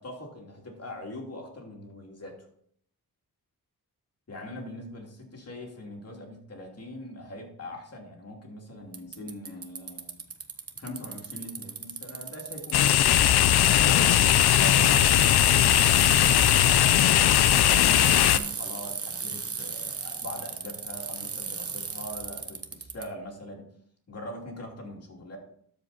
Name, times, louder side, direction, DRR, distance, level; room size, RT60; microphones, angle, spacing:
voice 1, 0.0-2.5 4.3-10.3 10.7-16.7 17.1-23.7 24.1-25.4, left 1 dB, 40° left, 0 dB, 2.9 m, -42 dB
Bicycle, 8.9-23.1, right 5 dB, 40° right, 1.1 m, -35 dB
sound 1, 12.7-18.4, left 12 dB, 90° left, 0.5 m, -19 dB
12.5 x 5.2 x 4.3 m, 0.64 s
cardioid pair, 90°, 37 cm